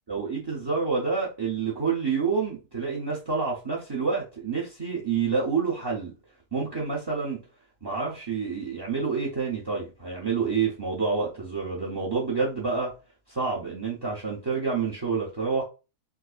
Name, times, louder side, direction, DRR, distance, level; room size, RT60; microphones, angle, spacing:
voice 1, 0.1-6.1 6.5-7.4 7.8-12.9 13.3-15.6, right 5 dB, 30° right, 0.5 m, -28 dB
4.7 x 2.0 x 2.4 m
omnidirectional pair, 1.5 m